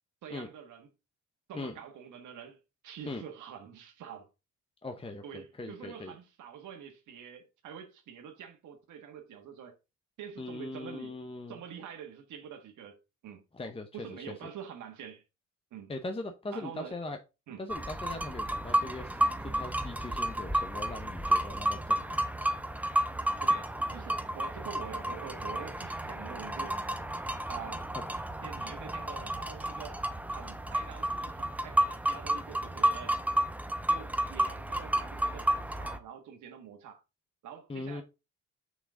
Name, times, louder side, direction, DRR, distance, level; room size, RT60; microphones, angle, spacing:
voice 1, 0.2-0.9 1.5-2.6 2.8-4.3 5.2-9.7 10.2-11.2 11.5-13.0 13.2-13.4 13.9-15.2 15.7-15.9 16.5-17.0 17.5-17.6 23.4-26.8 27.5-27.9 28.4-30.0 30.3-33.2 33.9-37.0 37.4-38.0, right 8 dB, 80° right, 1.8 m, -46 dB
voice 2, 4.8-6.1 10.4-11.6 13.5-14.5 15.9-17.2 17.6-22.2 37.7-38.0, left 2 dB, 20° left, 0.9 m, -40 dB
sound 1, 17.7-36.0, right 1 dB, 5° right, 0.8 m, -31 dB
6.1 x 6.0 x 3.8 m
cardioid pair, 90°, 30 cm